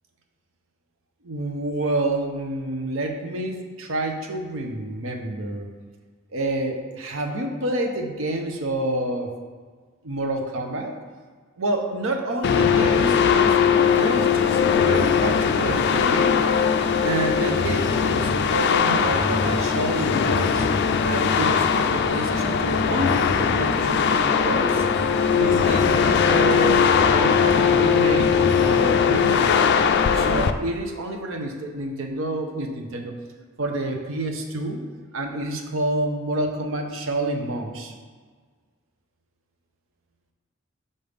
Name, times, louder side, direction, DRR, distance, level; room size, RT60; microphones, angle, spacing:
voice 1, 1.2-5.7 6.3-9.3 10.0-11.0 11.6-13.6 13.8-16.3 17.0-20.7 21.0-24.8 25.3-29.5 30.1-33.1 33.6-34.8 35.1-37.9, right 1 dB, 85° right, 3 dB, 0.8 m, -28 dB
sound 1, 12.4-30.5, left 6 dB, 60° left, 0.3 m, -20 dB
sound 2, 18.0-28.3, left 1 dB, 10° left, 0.6 m, -36 dB
5.4 x 5.3 x 3.4 m, 1.5 s
head